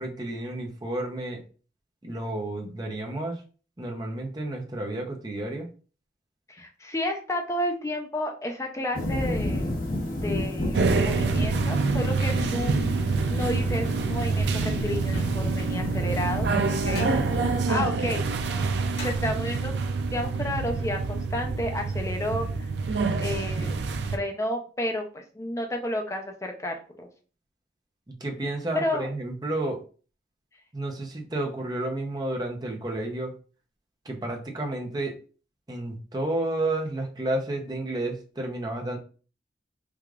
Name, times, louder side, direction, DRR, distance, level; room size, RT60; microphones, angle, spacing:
voice 1, 0.0-1.4 2.0-3.4 3.8-5.7 28.1-29.8 30.7-33.3 34.0-35.1 35.7-39.0, right 1 dB, 25° right, 1 dB, 0.6 m, -31 dB
voice 2, 6.5-9.7 10.2-12.8 13.3-18.2 19.0-19.8 20.1-22.7 23.2-23.8 24.1-27.1 28.7-29.1, left 1 dB, 15° left, 3 dB, 0.5 m, -31 dB
sound 1, 8.9-17.6, left 1 dB, 50° left, 0.9 m, -31 dB
sound 2, 10.7-24.2, right 4 dB, 75° right, 0.4 m, -26 dB
sound 3, 15.1-15.5 16.9-17.3 19.0-19.6, left 2 dB, 80° left, 1.7 m, -42 dB
4.7 x 2.4 x 2.4 m, 0.38 s
head